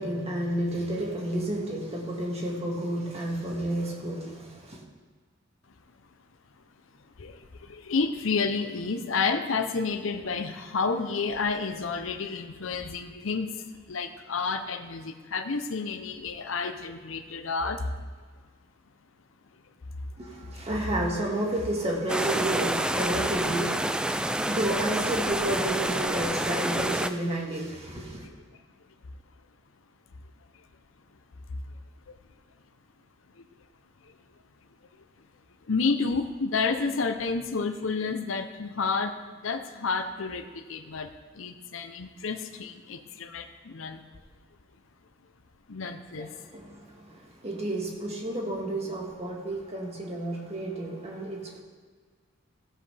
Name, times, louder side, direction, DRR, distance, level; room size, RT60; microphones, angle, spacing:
voice 1, 0.0-4.8 20.2-28.3 46.2-51.6, right 1 dB, 30° right, -1 dB, 1.9 m, -31 dB
voice 2, 7.2-17.9 28.2-28.3 31.5-31.6 32.1-32.2 33.4-33.5 34.0-34.1 35.6-39.1 39.4-44.0 45.7-46.3, left 4 dB, 80° left, 7 dB, 0.7 m, -30 dB
sound 1, 22.1-27.1, right 1 dB, 5° right, 0.3 m, -28 dB
15.5 x 7.4 x 3.4 m, 1.5 s
head